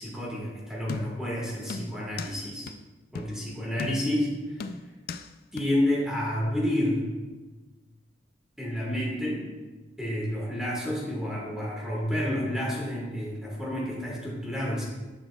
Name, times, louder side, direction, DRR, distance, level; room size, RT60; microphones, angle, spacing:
voice 1, 0.0-2.7 3.1-4.3 4.6-4.7 5.5-7.1 8.6-9.4 10.0-14.8, left 1 dB, 5° right, -4 dB, 1.6 m, -29 dB
sound 1, 0.9-1.3 1.7-2.4 2.7-2.8 3.1-3.4 3.8-4.2 4.6-5.3 5.6-5.7, left 4 dB, 50° left, 0.3 m, -36 dB
10.5 x 5.8 x 2.3 m, 1.2 s
head